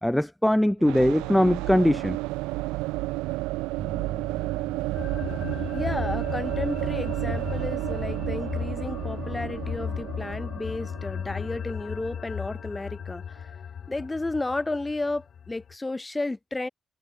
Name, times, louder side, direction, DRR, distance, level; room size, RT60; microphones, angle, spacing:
voice 1, 0.0-2.2, equal, 5° left, 0.8 m, -21 dB
sound 1, 0.8-12.6, right 22 dB, 85° right, 0.7 m, -32 dB
sound 2, 4.9-15.7, left 7 dB, 55° left, 3.7 m, -35 dB
voice 2, 5.7-13.5 13.9-16.7, left 2 dB, 20° left, 7.4 m, -32 dB
sound 3, 11.2-11.5, right 4 dB, 35° right, 7.2 m, -46 dB
hypercardioid pair, 50°, 0 cm